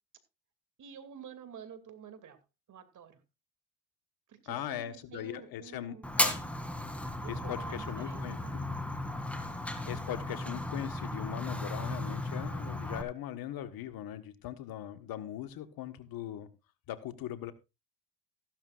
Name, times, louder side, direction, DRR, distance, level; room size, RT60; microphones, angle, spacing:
voice 1, 0.8-2.4 2.7-3.2 4.3-4.8 5.1-6.2 7.2-8.7, right 7 dB, 45° right, 9 dB, 2.5 m, -49 dB
voice 2, 4.5-6.4 7.3-8.7 9.9-16.5 16.9-17.5, left 12 dB, 55° left, 11 dB, 1.4 m, -40 dB
Fire, 6.0-13.0, left 1 dB, 5° left, 2.3 m, -35 dB
15.0 x 12.0 x 2.5 m, 0.25 s
hypercardioid pair, 80°, 43 cm